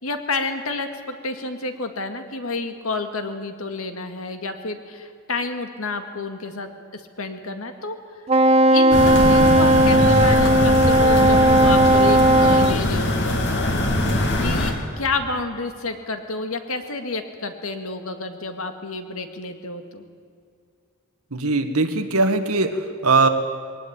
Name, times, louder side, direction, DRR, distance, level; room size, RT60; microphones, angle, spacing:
voice 1, 0.0-8.0 8.7-13.7 14.4-20.0, left 3 dB, 75° left, 6 dB, 2.1 m, -29 dB
Wind instrument woodwind instrument, 8.3-12.8, right 1 dB, 30° right, 0.7 m, -16 dB
sound 1, 8.9-14.7, left 1 dB, 55° left, 2.9 m, -22 dB
voice 2, 21.3-23.3, right 3 dB, 85° right, 7 dB, 1.8 m, -20 dB
21.5 x 18.5 x 8.9 m, 2.3 s
head